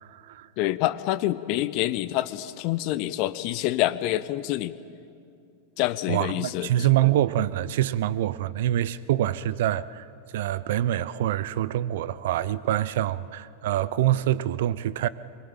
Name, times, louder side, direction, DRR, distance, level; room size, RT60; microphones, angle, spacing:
voice 1, 0.0-0.5 6.1-10.1 10.3-15.1, right 13 dB, 55° right, 0.7 m, -25 dB
voice 2, 0.6-4.7 5.8-6.7, left 15 dB, 45° left, 0.9 m, -27 dB
24.0 x 22.5 x 9.0 m
figure-of-eight pair, 90°, 0 cm